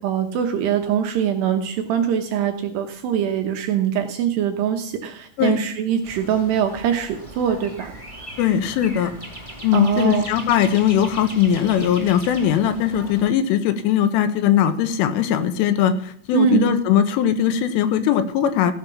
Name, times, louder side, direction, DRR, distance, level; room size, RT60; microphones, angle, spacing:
voice 1, 0.0-7.9 9.7-10.3 16.3-16.8, right 8 dB, 80° right, 5 dB, 2.5 m, -22 dB
sound 1, 6.0-13.3, right 1 dB, 20° left, 0.8 m, -39 dB
voice 2, 8.4-9.1 9.6-18.7, left 9 dB, 80° left, 10 dB, 3.2 m, -20 dB
15.5 x 5.8 x 7.1 m, 0.63 s
omnidirectional pair, 6.0 m